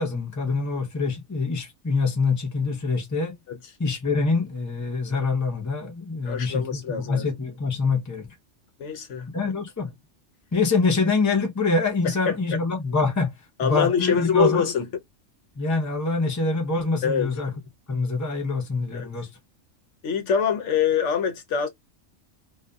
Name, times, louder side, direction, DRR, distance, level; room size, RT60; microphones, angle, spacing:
voice 1, 0.0-3.4 3.8-6.8 7.1-8.3 9.3-9.9 10.5-13.3 13.6-14.7 15.6-17.5 17.9-19.3, left 3 dB, 15° left, 0.7 m, -25 dB
voice 2, 6.2-7.2 8.8-9.5 12.3-12.4 13.6-14.9 17.0-17.4 18.9-19.1 20.0-21.7, left 7 dB, 70° left, 0.9 m, -24 dB
2.5 x 2.4 x 2.2 m
omnidirectional pair, 1.3 m